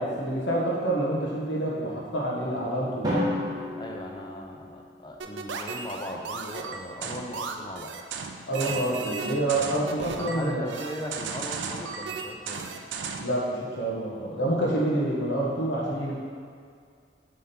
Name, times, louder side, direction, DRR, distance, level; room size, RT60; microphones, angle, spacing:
voice 1, 0.0-3.1 8.5-10.7 13.2-16.1, right 1 dB, 70° left, -4 dB, 1.3 m, -27 dB
Drum, 3.0-5.1, left 1 dB, 20° right, 1.4 m, -31 dB
voice 2, 3.8-7.9 10.2-12.7, left 1 dB, 25° left, 1 dB, 0.5 m, -38 dB
sound 1, 5.2-13.4, right 5 dB, 75° right, 0.4 m, -35 dB
6.8 x 3.7 x 4.4 m, 2.1 s
head